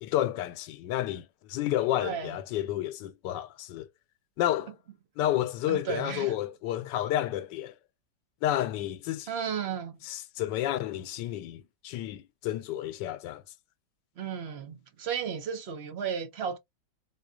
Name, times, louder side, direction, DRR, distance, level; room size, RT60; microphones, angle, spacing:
voice 1, 0.0-3.9 4.4-4.8 5.2-7.7 8.4-9.4 10.0-13.4, left 13 dB, 90° left, 1.2 m, -31 dB
voice 2, 2.0-2.4 5.7-6.3 9.3-10.0 14.2-16.6, right 7 dB, 55° right, 0.7 m, -34 dB
3.8 x 3.0 x 2.3 m
omnidirectional pair, 1.9 m